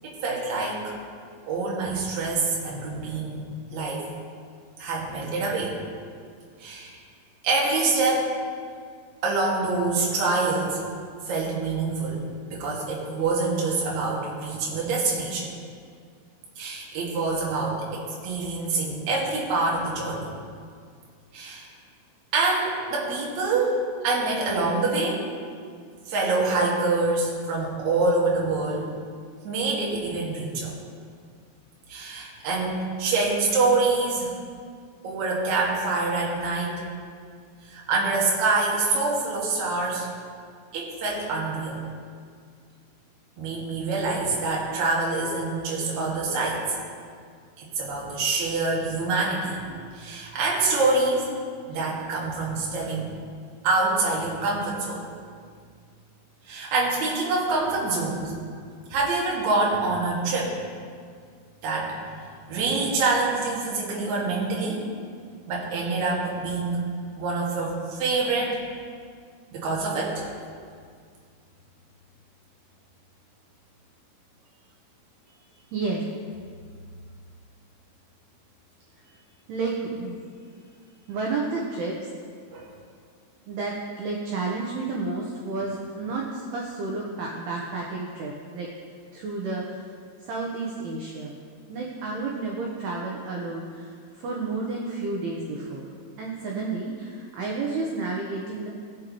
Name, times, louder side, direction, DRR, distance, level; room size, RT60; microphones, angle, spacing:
voice 1, 0.0-1.0 1.5-4.1 4.8-5.8 6.6-7.0 7.4-8.3 9.2-10.8 11.3-15.5 16.6-20.3 21.3-21.7 22.3-25.3 26.1-28.9 29.4-30.7 31.9-34.3 35.0-36.8 37.6-40.1 40.7-41.7 43.4-46.6 47.6-49.6 49.9-51.3 51.7-53.1 53.6-55.0 56.5-58.3 58.9-60.6 61.6-62.0 62.5-64.8 65.5-66.8 67.2-68.6 69.5-70.3 82.5-82.7, right 3 dB, 60° right, -4 dB, 2.1 m, -26 dB
voice 2, 75.7-76.0 79.0-79.2 79.5-80.2 81.1-82.1 83.5-88.7 89.1-89.9 90.2-91.4 91.7-95.9 96.2-98.7, right 3 dB, 80° right, -2 dB, 2.3 m, -31 dB
19.0 x 6.5 x 3.0 m, 2.1 s
omnidirectional pair, 5.8 m